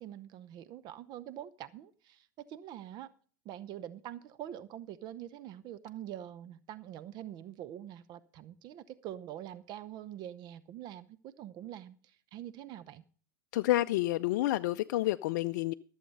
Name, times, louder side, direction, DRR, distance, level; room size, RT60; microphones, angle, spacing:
voice 1, 0.0-3.1 3.4-13.0, right 11 dB, 45° right, 0.7 m, -45 dB
voice 2, 13.5-15.7, left 16 dB, 60° left, 0.4 m, -29 dB
14.0 x 7.4 x 5.3 m
hypercardioid pair, 95°, 10 cm